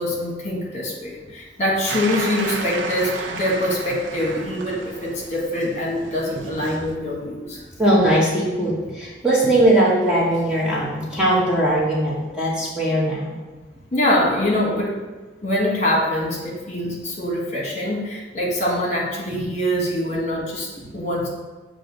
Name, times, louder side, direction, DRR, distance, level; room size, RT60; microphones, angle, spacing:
voice 1, 0.0-7.6 13.9-15.0 15.4-21.3, left 1 dB, 40° left, -3 dB, 1.3 m, -24 dB
sound 1, 1.9-7.0, right 3 dB, 85° right, 0.6 m, -32 dB
voice 2, 7.8-13.4 19.3-19.4, right 1 dB, 5° right, -7 dB, 0.9 m, -20 dB
7.5 x 2.6 x 5.1 m, 1.2 s
head